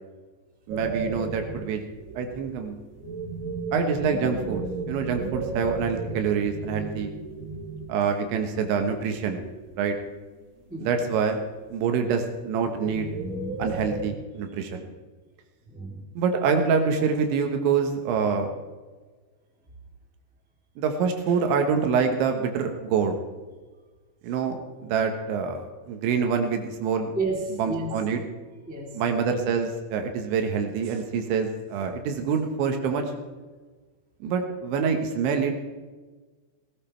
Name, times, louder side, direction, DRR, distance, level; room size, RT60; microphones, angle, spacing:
sound 1, 0.7-8.0 8.5-9.8 10.3-10.9 11.4-14.0, right 3 dB, 30° right, 3.2 m, -34 dB
voice 1, 0.7-1.8 2.2-2.8 3.7-7.1 7.9-9.4 9.8-10.0 10.8-11.4 11.7-13.1 13.6-14.8 16.2-18.5 20.8-23.2 24.2-27.1 27.6-28.2 28.9-33.0 34.2-35.5, right 6 dB, 75° right, 5 dB, 3.4 m, -26 dB
voice 2, 15.7-16.0 27.1-27.9 28.6-29.0, right 3 dB, 5° right, -2 dB, 1.3 m, -31 dB
17.5 x 15.5 x 4.5 m, 1.3 s
omnidirectional pair, 5.6 m